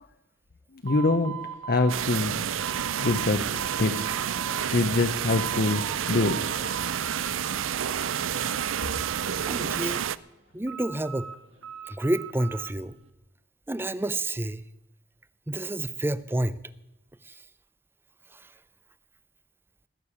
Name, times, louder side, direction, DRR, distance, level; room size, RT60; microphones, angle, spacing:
voice 1, 0.8-1.4 1.7-2.5 3.0-4.0 4.5-6.7, left 2 dB, 50° left, 8 dB, 0.8 m, -25 dB
sound 1, 0.8-3.3 3.6-4.6 5.0-6.0 6.2-7.3 7.7-8.7 8.9-10.2 10.7-12.7, right 7 dB, 70° right, 1.7 m, -39 dB
sound 2, 1.9-10.2, right 9 dB, 90° right, 0.5 m, -29 dB
voice 2, 9.5-10.0 10.5-11.3 11.9-12.9 13.7-14.6 15.5-16.6 17.3-17.4 18.3-18.4, right 1 dB, 10° right, 17 dB, 0.5 m, -29 dB
19.5 x 6.8 x 9.9 m, 0.93 s
head